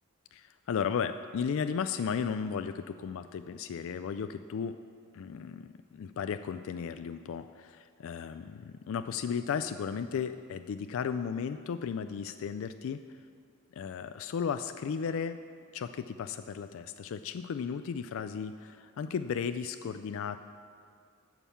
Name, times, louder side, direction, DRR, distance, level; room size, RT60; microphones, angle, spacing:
voice 1, 0.3-4.8 5.1-13.0 13.7-15.4 15.7-20.4, left 6 dB, 65° left, 10 dB, 0.3 m, -35 dB
13.0 x 5.5 x 7.1 m, 2.2 s
head